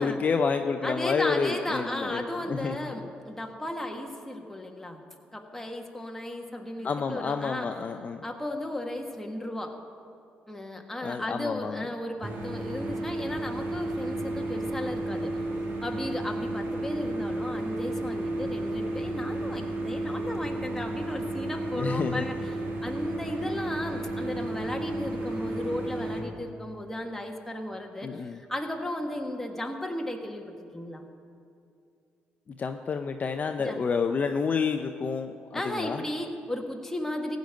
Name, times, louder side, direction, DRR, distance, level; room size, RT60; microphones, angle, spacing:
voice 1, 0.0-2.7 6.8-8.2 11.0-11.9 21.8-22.3 28.0-28.4 32.6-36.0, left 5 dB, 40° left, 6 dB, 0.5 m, -29 dB
voice 2, 0.8-5.0 5.3-7.7 8.2-9.8 10.5-15.4 15.8-31.0 33.6-33.8 35.5-37.4, left 1 dB, 10° left, 2 dB, 1.5 m, -35 dB
sound 1, 12.2-26.2, right 1 dB, 65° right, 2.0 m, -32 dB
15.5 x 5.2 x 9.3 m, 2.5 s
cardioid pair, 85°, 4 cm